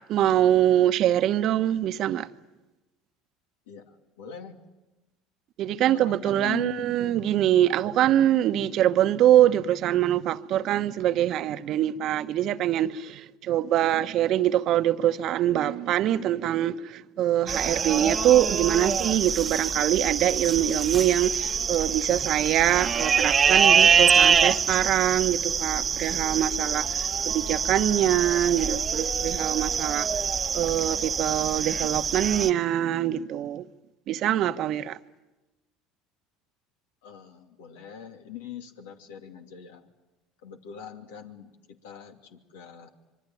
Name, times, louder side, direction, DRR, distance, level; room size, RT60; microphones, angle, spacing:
voice 1, 0.1-2.3 5.6-30.1 30.5-33.7 34.1-35.0, right 12 dB, 55° right, 1.1 m, -24 dB
voice 2, 3.7-4.6 5.8-6.9 37.0-39.9 40.4-42.9, left 9 dB, 85° left, 2.7 m, -42 dB
sound 1, 17.5-32.5, right 6 dB, 35° right, 1.1 m, -25 dB
25.5 x 23.5 x 9.3 m
hypercardioid pair, 80°, 0 cm